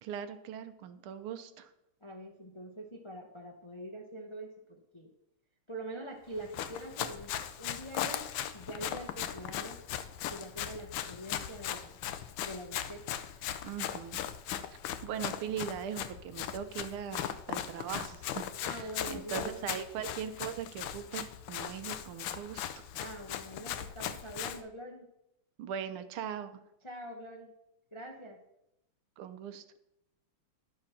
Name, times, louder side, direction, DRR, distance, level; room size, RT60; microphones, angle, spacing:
voice 1, 0.0-1.7 13.6-14.2 15.0-22.7 25.6-26.5 29.2-29.6, right 8 dB, 85° right, 10 dB, 1.7 m, -40 dB
voice 2, 2.0-5.1 5.7-9.8 10.3-12.0 12.4-13.2 18.6-19.6 23.0-25.1 26.8-27.5 27.9-28.4, right 1 dB, 40° left, 2 dB, 0.4 m, -44 dB
Run, 6.4-24.6, left 10 dB, 75° left, 1.4 m, -39 dB
11.0 x 6.3 x 5.7 m, 0.84 s
omnidirectional pair, 2.3 m